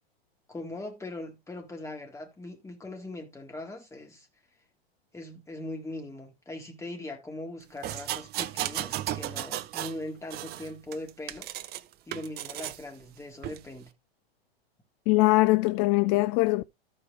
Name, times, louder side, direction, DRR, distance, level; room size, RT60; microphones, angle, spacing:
voice 1, 0.5-4.3 5.1-11.5 12.1-13.9, left 2 dB, 10° left, 3.7 m, -40 dB
sound 1, 7.8-10.0 10.3-11.8 12.1-12.8 13.4-13.6, right 13 dB, 30° right, 0.8 m, -34 dB
voice 2, 15.1-16.7, left 21 dB, 40° left, 0.5 m, -22 dB
14.0 x 5.2 x 3.3 m
hypercardioid pair, 115°, 31 cm